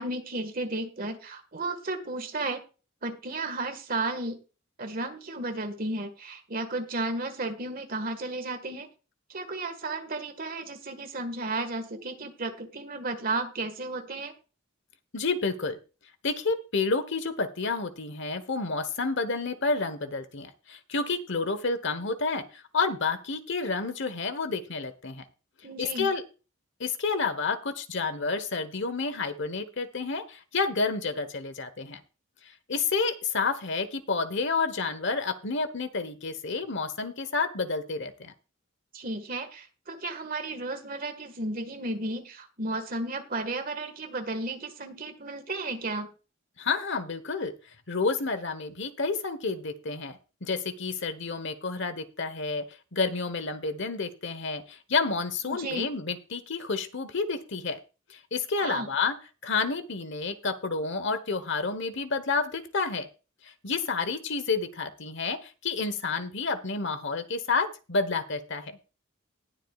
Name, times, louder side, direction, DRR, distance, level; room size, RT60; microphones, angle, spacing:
voice 1, 0.0-2.6 3.0-4.4 4.8-8.9 9.3-14.3 25.6-26.1 38.9-46.1 55.5-55.9 58.6-58.9, right 2 dB, 45° right, 7 dB, 1.7 m, -33 dB
voice 2, 15.1-15.8 16.2-25.2 25.8-26.2 26.8-32.0 32.7-38.3 46.6-47.5 47.9-52.6 52.9-57.8 58.1-59.1 59.4-63.1 63.6-68.8, left 4 dB, 65° left, 11 dB, 1.2 m, -30 dB
19.5 x 7.5 x 2.4 m, 0.33 s
head